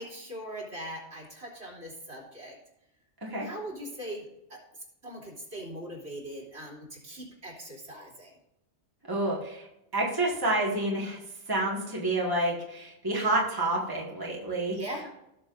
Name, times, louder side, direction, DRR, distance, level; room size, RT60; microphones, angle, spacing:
voice 1, 0.0-2.6 3.4-4.3 4.5-4.6 5.0-8.3 14.7-15.1, right 1 dB, 65° right, -3 dB, 3.5 m, -40 dB
voice 2, 9.1-9.7 9.9-11.2 11.5-14.9, right 1 dB, 20° right, -3 dB, 1.8 m, -29 dB
17.0 x 6.8 x 2.6 m, 0.90 s
omnidirectional pair, 1.2 m